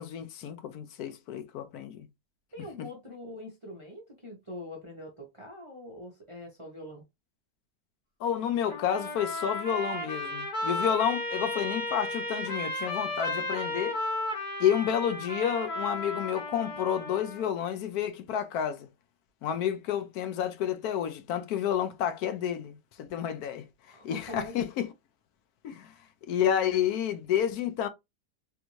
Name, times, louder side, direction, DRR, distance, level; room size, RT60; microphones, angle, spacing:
voice 1, 0.0-2.1 8.2-14.0 14.6-18.9 19.4-23.7 24.0-24.9 25.6-25.9 26.3-27.9, left 9 dB, 70° left, 1.0 m, -30 dB
voice 2, 2.5-7.0 23.9-24.7, left 1 dB, 25° right, 0.8 m, -43 dB
Trumpet, 8.7-17.5, left 1 dB, 25° left, 1.5 m, -34 dB
3.5 x 2.6 x 3.0 m
omnidirectional pair, 1.8 m